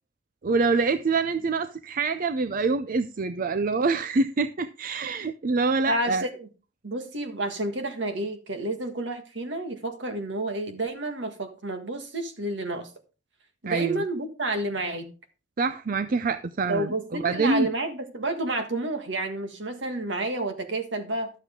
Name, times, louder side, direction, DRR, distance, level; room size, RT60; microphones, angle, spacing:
voice 1, 0.4-6.2 13.7-14.0 15.6-17.7, right 4 dB, 45° right, 0.5 m, -25 dB
voice 2, 5.9-6.5 6.8-12.9 13.6-15.1 16.7-21.3, right 2 dB, 70° right, 1.7 m, -30 dB
12.0 x 7.5 x 3.6 m
head